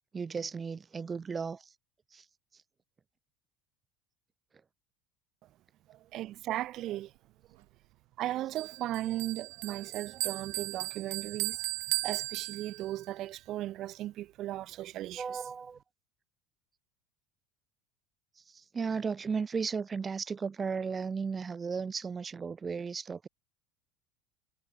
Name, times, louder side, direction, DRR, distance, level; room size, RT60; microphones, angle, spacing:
voice 1, 0.1-1.6 2.1-2.2 15.2-15.8 18.5-23.3, right 5 dB, 25° right, 1.8 m, -35 dB
voice 2, 5.9-7.1 8.2-11.6 12.0-15.4, right 14 dB, 55° right, 2.4 m, -36 dB
Bell, 8.6-13.1, right 40 dB or more, 75° right, 2.0 m, -36 dB
supercardioid pair, 100°, 0 cm